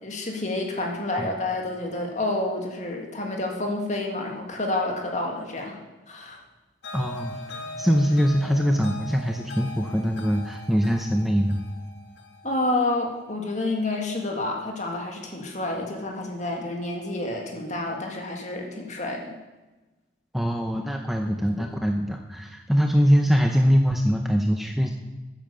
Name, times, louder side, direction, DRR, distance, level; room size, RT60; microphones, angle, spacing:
voice 1, 0.0-5.8 6.1-6.4 12.4-19.3, left 2 dB, 40° left, 1 dB, 1.9 m, -29 dB
sound 1, 6.8-14.0, left 2 dB, 65° left, 1.4 m, -41 dB
voice 2, 6.9-7.4 7.8-11.6 20.3-24.9, equal, ahead, 3 dB, 0.6 m, -22 dB
10.5 x 9.1 x 6.9 m, 1.2 s
head